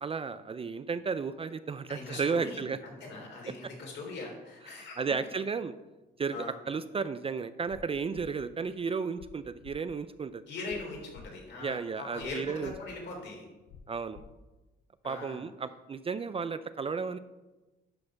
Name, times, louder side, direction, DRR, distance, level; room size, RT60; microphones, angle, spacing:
voice 1, 0.0-2.8 4.7-5.7 6.2-10.4 11.6-12.7 13.9-14.2 15.0-17.2, right 5 dB, 30° right, 13 dB, 0.4 m, -33 dB
voice 2, 1.9-5.0 6.3-6.5 10.5-13.4 15.0-15.4, left 3 dB, 60° left, -1 dB, 3.3 m, -41 dB
sound 1, 7.7-7.8 8.1-8.3 9.2-9.3 9.6-9.8 10.7-10.8 11.1-11.3 12.2-12.3 12.6-12.8 13.7-13.8 14.1-14.3, left 7 dB, 90° left, 0.8 m, -50 dB
11.5 x 4.2 x 5.8 m, 1.1 s
cardioid pair, 90°, 20 cm